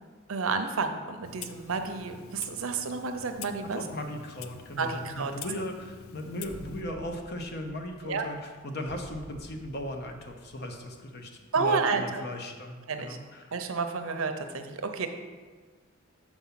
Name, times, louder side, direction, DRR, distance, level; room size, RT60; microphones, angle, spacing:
voice 1, 0.3-3.8 4.7-5.3 8.0-8.2 11.5-12.2 12.9-13.2 13.5-15.1, right 4 dB, 80° right, 7 dB, 0.7 m, -30 dB
Clock, 1.2-6.8, left 7 dB, 85° left, 0.5 m, -46 dB
voice 2, 3.6-13.5, left 1 dB, 50° left, 4 dB, 0.8 m, -37 dB
sound 1, 6.4-11.2, right 1 dB, 10° right, 0.8 m, -50 dB
7.0 x 4.6 x 5.8 m, 1.5 s
head